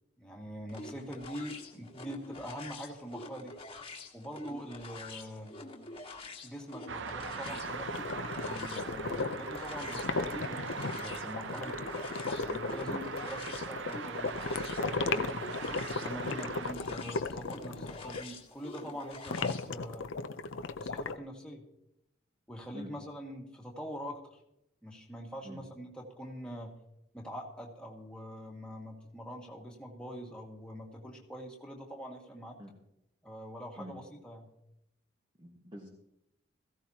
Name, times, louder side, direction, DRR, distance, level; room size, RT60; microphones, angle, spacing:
voice 1, 0.2-3.5 4.1-5.6 6.4-7.9 8.4-11.8 12.4-15.3 15.9-20.1 20.8-21.6 22.5-24.4 24.8-26.8 27.1-32.6 33.2-34.5, equal, 5° left, -2 dB, 2.0 m, -44 dB
sound 1, 0.7-19.7, left 2 dB, 30° left, 1.6 m, -47 dB
sound 2, 6.9-16.7, right 5 dB, 70° right, 0.6 m, -41 dB
sound 3, 7.5-18.2 19.3-21.1, left 3 dB, 75° left, 0.6 m, -36 dB
voice 2, 35.4-35.9, equal, 25° right, 1 dB, 1.5 m, -46 dB
17.0 x 15.5 x 2.9 m, 0.81 s
head